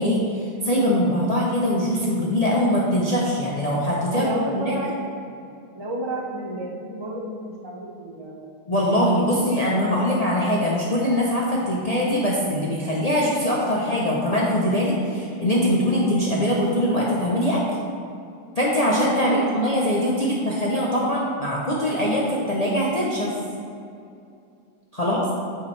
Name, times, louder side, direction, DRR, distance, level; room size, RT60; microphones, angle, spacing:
voice 1, 0.0-4.3 4.5-4.8 8.7-17.6 18.6-23.3 24.9-25.3, equal, 55° left, -4 dB, 0.4 m, -22 dB
voice 2, 4.1-5.0 5.7-8.5 9.0-9.7 19.3-19.5 25.0-25.5, right 1 dB, 25° right, -3 dB, 0.6 m, -32 dB
8.4 x 4.8 x 3.2 m, 2.5 s
omnidirectional pair, 1.8 m